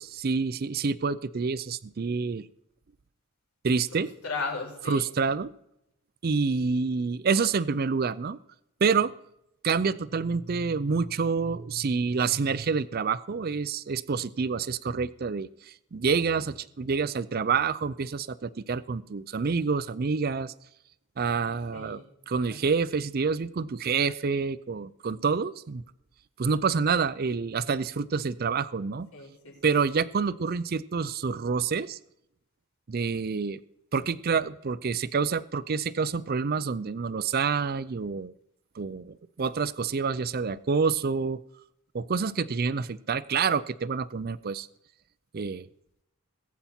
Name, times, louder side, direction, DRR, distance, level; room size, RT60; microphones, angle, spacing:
voice 1, 0.0-2.5 3.6-4.1 4.9-5.5 6.2-8.4 8.8-9.1 9.6-20.5 21.2-22.0 22.3-25.8 26.4-29.1 29.6-32.0 32.9-33.6 33.9-38.3 38.8-41.4 41.9-44.7 45.3-45.7, right 5 dB, 45° right, 17 dB, 0.4 m, -27 dB
voice 2, 3.9-5.0 21.7-22.0 22.4-22.6 29.1-29.8, left 4 dB, 80° left, -1 dB, 5.6 m, -36 dB
21.0 x 8.4 x 4.4 m, 0.79 s
head